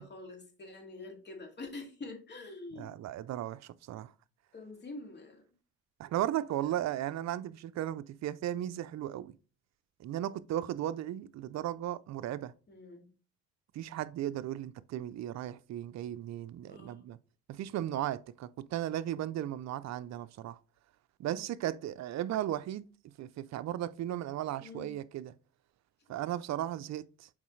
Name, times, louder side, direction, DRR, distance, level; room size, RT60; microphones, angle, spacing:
voice 1, 0.0-2.9 4.5-5.5 6.6-6.7 12.7-13.1 16.7-17.0 21.3-21.5 24.6-25.0, left 3 dB, 35° left, 2.3 m, -46 dB
voice 2, 2.8-4.1 6.0-9.3 10.0-12.5 13.7-17.2 17.5-20.6 21.2-22.9 23.2-25.3 26.1-27.3, right 12 dB, 60° right, 0.5 m, -36 dB
7.2 x 4.7 x 3.2 m
cardioid pair, 95°, 31 cm